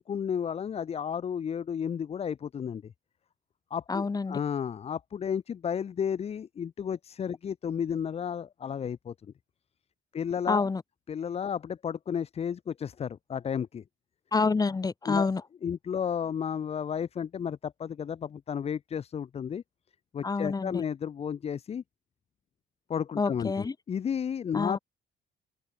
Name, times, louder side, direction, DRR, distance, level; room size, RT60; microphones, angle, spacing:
voice 1, 0.0-2.9 3.7-9.1 10.1-10.7 11.1-13.8 15.1-15.3 15.6-19.6 20.1-21.8 22.9-24.8, left 7 dB, 35° left, 1.0 m, -32 dB
voice 2, 3.9-4.4 10.5-10.8 14.3-15.4 20.2-20.8 23.2-23.7 24.5-24.8, left 4 dB, 20° left, 1.9 m, -28 dB
open air
cardioid pair, 110°, 17 cm